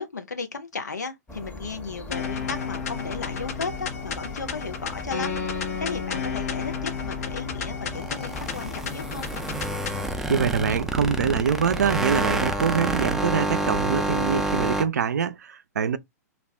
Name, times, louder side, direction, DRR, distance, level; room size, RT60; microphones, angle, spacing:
voice 1, 0.0-9.3, left 4 dB, 90° left, 0.5 m, -35 dB
sound 1, 1.3-14.7, left 2 dB, 15° left, 0.8 m, -40 dB
sound 2, 2.1-10.1, left 6 dB, 65° left, 0.9 m, -32 dB
sound 3, 7.8-14.8, right 2 dB, 5° right, 0.4 m, -28 dB
voice 2, 10.3-16.0, right 7 dB, 80° right, 0.4 m, -24 dB
2.3 x 2.0 x 3.4 m
hypercardioid pair, 110°, 9 cm